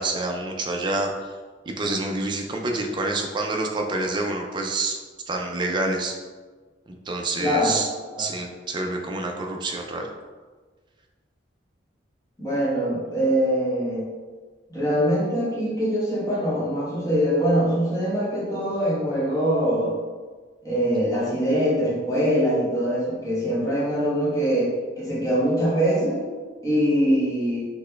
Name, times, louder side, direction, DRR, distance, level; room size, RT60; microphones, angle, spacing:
voice 1, 0.0-1.3 1.7-5.0 5.3-6.1 6.9-7.9 8.2-10.1, right 2 dB, 25° right, 2 dB, 0.4 m, -27 dB
voice 2, 7.4-7.8 8.1-8.3 12.4-14.1 14.7-19.9 20.6-24.7 25.0-26.3 26.6-27.7, equal, 20° left, -8 dB, 1.1 m, -23 dB
3.9 x 2.2 x 3.2 m, 1.4 s
head